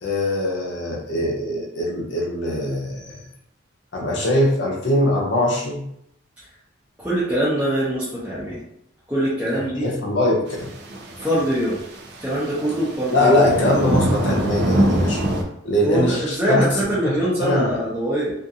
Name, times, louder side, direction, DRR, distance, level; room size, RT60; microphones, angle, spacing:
voice 1, 0.0-3.2 3.9-5.8 9.8-10.7 13.1-15.2 15.6-17.1 17.4-17.8, left 1 dB, 60° left, -1 dB, 0.7 m, -21 dB
voice 2, 7.0-8.6 9.1-9.9 11.2-11.8 12.2-13.4 15.8-18.3, equal, 5° right, -11 dB, 0.6 m, -23 dB
sound 1, 10.5-15.4, right 1 dB, 55° right, 0.4 m, -24 dB
2.5 x 2.5 x 2.7 m, 0.74 s
head